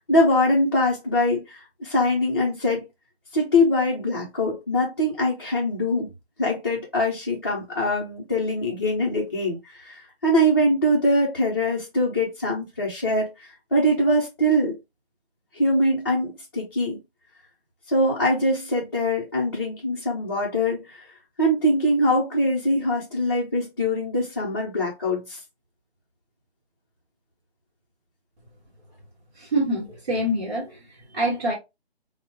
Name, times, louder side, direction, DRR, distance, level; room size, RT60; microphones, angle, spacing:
voice 1, 0.1-2.8 3.3-6.1 6.4-14.8 15.5-17.0 17.9-21.0 21.4-25.4, left 1 dB, 20° left, 0.6 m, -23 dB
voice 2, 29.3-31.5, right 1 dB, 40° right, 1.1 m, -26 dB
4.0 x 2.1 x 2.8 m
figure-of-eight pair, 145°, 32 cm